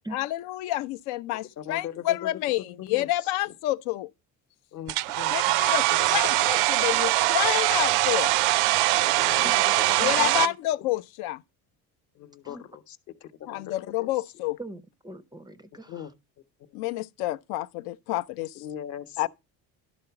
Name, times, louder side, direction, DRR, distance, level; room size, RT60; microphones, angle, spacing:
voice 1, 0.1-4.1 5.3-8.3 10.0-11.4 13.5-14.6 16.7-18.5 19.2-19.3, left 15 dB, 85° left, 0.5 m, -29 dB
voice 2, 1.6-3.5 4.7-5.4 6.0-6.9 9.0-10.6 12.2-14.1 15.9-16.1 16.6-16.7 18.5-19.3, left 10 dB, 50° left, 0.9 m, -41 dB
Domestic sounds home sounds, 4.9-10.5, right 17 dB, 90° right, 0.5 m, -22 dB
voice 3, 10.0-10.4 12.4-12.6 14.6-16.1, right 2 dB, 10° right, 0.4 m, -42 dB
11.5 x 3.9 x 5.7 m
cardioid pair, 130°, 37 cm